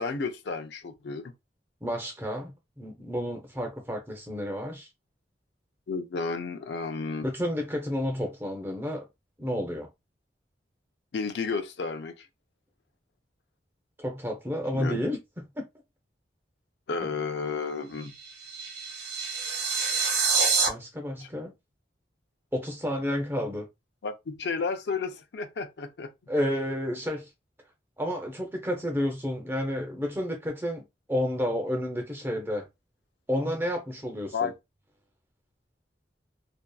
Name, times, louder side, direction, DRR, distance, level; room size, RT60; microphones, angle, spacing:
voice 1, 0.0-1.3 5.9-7.3 11.1-12.3 14.7-15.0 16.9-18.1 21.4-21.5 24.0-26.1 34.3-34.5, left 4 dB, 70° left, 0.4 m, -32 dB
voice 2, 1.8-4.9 7.2-9.1 9.4-9.9 14.0-15.2 15.6-15.7 20.7-21.5 22.5-23.7 26.3-27.3 28.0-32.7 33.3-34.5, equal, 10° right, 0.6 m, -31 dB
sound 1, 18.0-20.7, right 5 dB, 75° right, 0.7 m, -27 dB
2.6 x 2.3 x 2.2 m
head